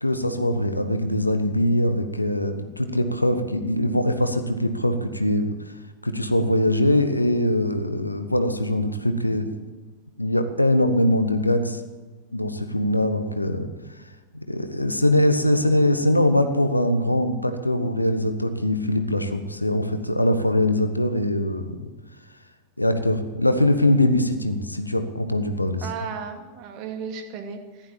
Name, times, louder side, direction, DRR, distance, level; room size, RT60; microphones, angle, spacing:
voice 1, 0.0-5.5 6.0-9.5 10.2-11.8 12.3-13.7 14.3-21.9 22.8-25.9, left 1 dB, 85° left, 9 dB, 1.3 m, -22 dB
voice 2, 25.8-27.9, right 6 dB, 40° right, 5 dB, 2.4 m, -35 dB
15.5 x 12.0 x 7.5 m, 1.3 s
figure-of-eight pair, 90°, 0 cm